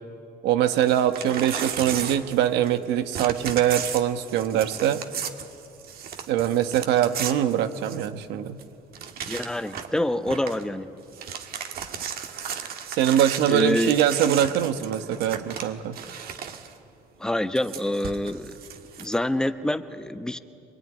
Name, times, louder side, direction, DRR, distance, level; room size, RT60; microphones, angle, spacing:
voice 1, 0.4-5.0 6.3-8.6 12.9-16.0, right 10 dB, 90° right, 9 dB, 1.3 m, -23 dB
Crumpling crinkling / Tearing, 0.7-2.8 3.1-8.2 8.6-8.7 8.9-10.0 10.3-10.6 11.0-16.7 17.5-19.1, right 7 dB, 60° right, 1.8 m, -35 dB
voice 2, 9.3-10.9 13.5-14.0 17.2-18.5 19.0-20.4, left 1 dB, 5° left, 9 dB, 0.9 m, -26 dB
23.5 x 22.5 x 10.0 m, 2.7 s
cardioid pair, 110°, 17 cm